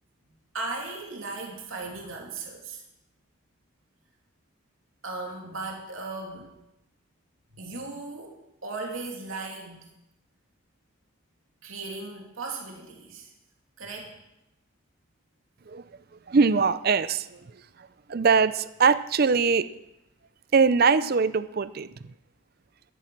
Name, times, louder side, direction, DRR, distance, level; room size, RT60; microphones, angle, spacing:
voice 1, 0.5-2.8 5.0-6.5 7.5-9.8 11.6-13.3 13.8-14.1, right 3 dB, 75° right, 0 dB, 2.7 m, -37 dB
voice 2, 16.3-19.7 20.5-21.9, right 5 dB, 45° right, 15 dB, 0.5 m, -22 dB
13.0 x 11.0 x 6.2 m, 0.89 s
head